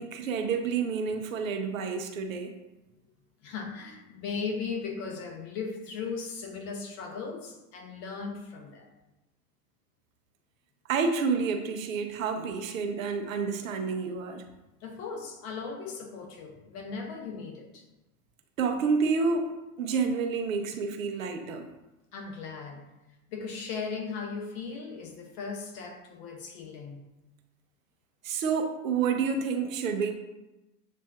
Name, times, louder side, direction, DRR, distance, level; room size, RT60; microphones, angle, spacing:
voice 1, 0.0-2.5 10.9-14.4 18.6-19.5 19.8-21.6 28.2-30.1, right 5 dB, 55° right, 5 dB, 0.6 m, -29 dB
voice 2, 3.4-8.9 14.8-17.8 22.1-22.9 23.3-27.0, left 5 dB, 35° left, 2 dB, 0.9 m, -37 dB
7.4 x 2.5 x 2.3 m, 1.0 s
figure-of-eight pair, 85°, 48 cm